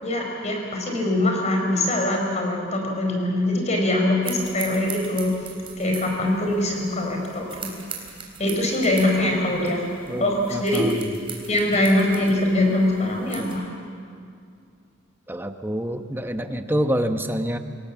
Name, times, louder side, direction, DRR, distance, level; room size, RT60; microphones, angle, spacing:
voice 1, 0.0-5.4 5.8-7.7 8.4-10.9 11.5-13.7, left 1 dB, 35° left, 2 dB, 4.6 m, -23 dB
sound 1, 4.2-13.6, right 6 dB, 25° right, 3.6 m, -40 dB
voice 2, 10.1-11.1 15.3-17.6, equal, 10° right, 7 dB, 1.0 m, -27 dB
27.5 x 18.0 x 7.4 m, 2.3 s
head